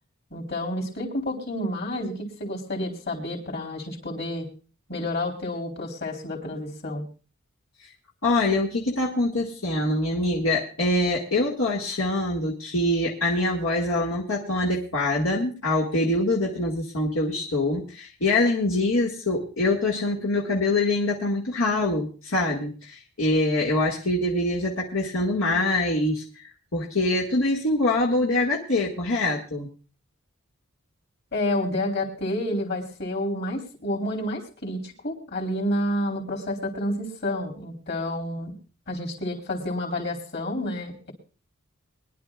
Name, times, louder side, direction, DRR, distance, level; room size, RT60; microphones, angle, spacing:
voice 1, 0.3-4.5 4.9-7.0 31.3-38.5 38.9-41.1, left 1 dB, 50° left, 2 dB, 3.7 m, -29 dB
voice 2, 8.2-29.7, left 2 dB, 80° left, -4 dB, 2.1 m, -24 dB
23.5 x 11.0 x 2.5 m, 0.35 s
head